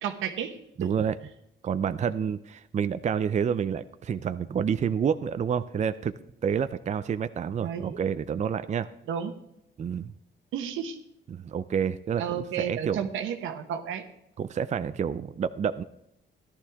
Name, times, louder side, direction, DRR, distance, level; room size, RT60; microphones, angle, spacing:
voice 1, 0.0-0.5 7.6-8.0 9.1-9.3 10.5-11.0 12.2-14.0, right 8 dB, 85° right, 7 dB, 1.2 m, -32 dB
voice 2, 0.8-1.2 1.6-6.1 6.4-8.9 9.8-10.1 11.3-13.0 14.4-15.8, right 7 dB, 35° right, 12 dB, 0.5 m, -28 dB
14.0 x 11.5 x 3.6 m, 0.80 s
cardioid pair, 90°, 20 cm